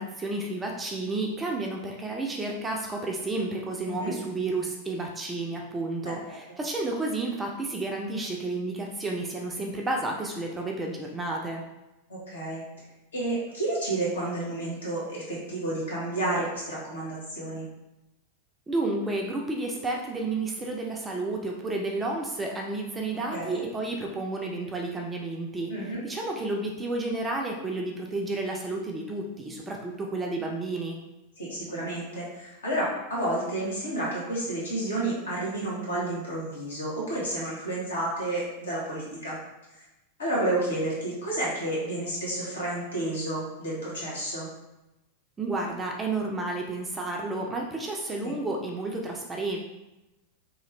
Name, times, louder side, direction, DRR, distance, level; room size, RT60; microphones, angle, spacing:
voice 1, 0.0-11.6 18.7-31.0 45.4-49.6, right 2 dB, 15° right, 0 dB, 0.4 m, -31 dB
voice 2, 6.0-6.6 12.1-12.6 13.1-17.7 23.3-23.6 25.7-26.0 31.4-39.4 39.7-39.8 40.2-44.5 48.2-48.3, right 1 dB, 70° left, -6 dB, 1.2 m, -31 dB
2.9 x 2.4 x 3.1 m, 0.97 s
figure-of-eight pair, 90°, 0 cm